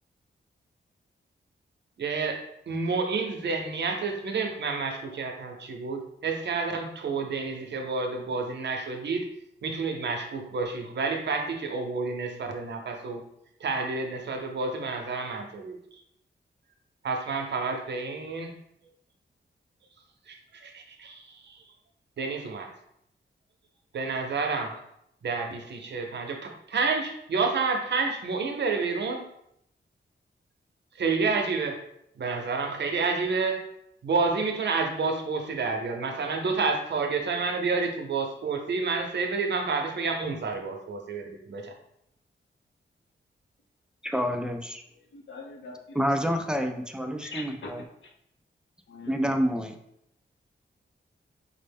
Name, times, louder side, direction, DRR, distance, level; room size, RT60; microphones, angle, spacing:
voice 1, 2.0-9.3 9.6-13.2 13.6-15.8 17.0-18.6 20.3-21.6 22.2-22.7 23.9-24.8 25.2-29.3 30.9-31.8 32.2-33.7 34.0-41.7, right 4 dB, 65° right, 3 dB, 0.6 m, -29 dB
voice 2, 44.0-44.8 45.9-47.8 49.1-49.7, equal, 5° right, 5 dB, 0.3 m, -28 dB
voice 3, 45.1-46.0 47.2-47.7 48.9-49.1, left 3 dB, 80° left, 1 dB, 0.8 m, -42 dB
5.1 x 2.1 x 3.4 m, 0.76 s
wide cardioid pair, 135°, 19 cm